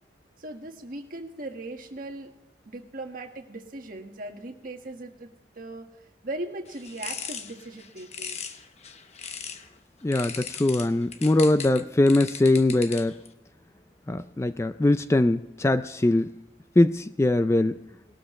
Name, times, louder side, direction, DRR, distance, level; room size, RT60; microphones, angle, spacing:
voice 1, 0.4-2.3 2.6-5.3 5.5-5.9 6.2-8.4, right 2 dB, 50° right, 3 dB, 1.6 m, -38 dB
sound 1, 6.7-9.7 10.1-13.3, left 7 dB, 40° left, 1.0 m, -38 dB
voice 2, 10.0-13.1 14.1-16.3 16.8-17.8, left 2 dB, 15° left, 11 dB, 0.3 m, -22 dB
19.5 x 12.5 x 3.2 m, 0.96 s
head